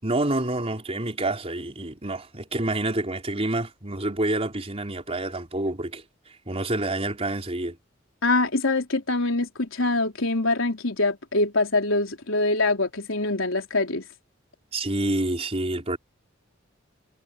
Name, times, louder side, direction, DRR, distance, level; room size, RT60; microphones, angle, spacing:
voice 1, 0.0-6.0 6.5-7.8 14.7-16.0, right 2 dB, 30° right, 4.2 m, -28 dB
voice 2, 8.2-14.0, left 2 dB, 85° left, 3.7 m, -24 dB
head